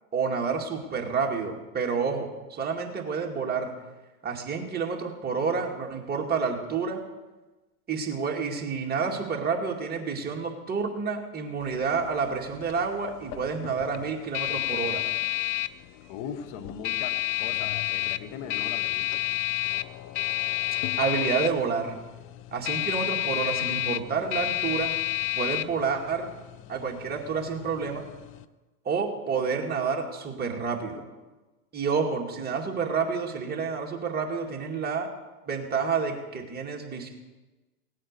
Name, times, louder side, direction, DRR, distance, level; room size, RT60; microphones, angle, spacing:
voice 1, 0.1-3.7 4.2-7.0 7.9-15.0 21.0-22.0 22.5-24.9 25.4-26.3 26.7-28.0 28.8-31.1 31.7-35.1 35.5-37.1, right 5 dB, 20° right, 1 dB, 2.3 m, -29 dB
sound 1, 11.6-28.4, left 19 dB, 30° left, 0.5 m, -31 dB
voice 2, 16.1-19.2, left 8 dB, 45° left, 8 dB, 1.5 m, -39 dB
17.5 x 8.8 x 6.8 m, 1.2 s
hypercardioid pair, 115°, 43 cm